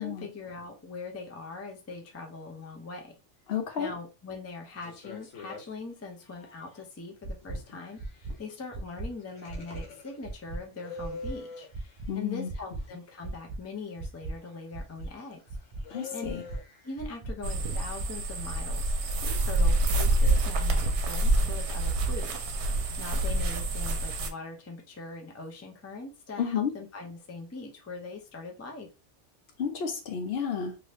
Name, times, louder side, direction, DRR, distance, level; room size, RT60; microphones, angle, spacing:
voice 1, 0.0-3.1 3.8-15.4 16.1-16.3 16.8-22.4 23.0-28.9, left 3 dB, 20° left, 0.4 m, -41 dB
voice 2, 3.5-3.9 12.1-12.5 15.9-16.4 26.4-26.7 29.6-30.8, left 7 dB, 65° left, 0.8 m, -31 dB
sound 1, 4.8-5.7 6.3-6.8 7.4-10.2 10.6-11.8 12.7-13.0 14.3-17.0 17.6-17.7 19.9-20.0, left 3 dB, 80° left, 1.2 m, -45 dB
sound 2, 7.2-7.6 8.0-8.3 8.7-9.1 9.5-9.8 10.2-10.6 11.0-11.3 11.7-12.1 12.5-12.8 13.2-13.6 14.0-14.3 14.7-15.1 15.5-15.8 16.2-16.6 17.0-17.3 17.7-18.1 18.5-18.8 19.2-19.3, right 2 dB, 40° right, 0.5 m, -36 dB
sound 3, 17.4-24.3, right 2 dB, 75° right, 0.9 m, -27 dB
2.7 x 2.7 x 3.2 m
omnidirectional pair, 1.2 m